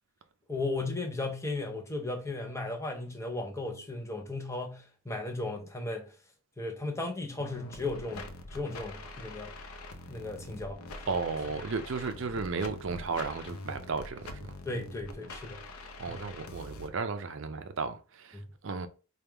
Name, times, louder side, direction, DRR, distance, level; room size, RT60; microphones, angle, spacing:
voice 1, 0.5-6.1 6.6-9.5 10.1-11.2 14.6-15.6 16.1-16.3 18.3-18.5, left 2 dB, 15° left, 0.6 m, -36 dB
sound 1, 7.4-16.9, left 2 dB, 80° left, 0.6 m, -45 dB
voice 2, 11.1-14.4 16.0-18.4 18.6-18.9, right 4 dB, 60° right, 0.5 m, -34 dB
3.4 x 2.3 x 4.4 m
head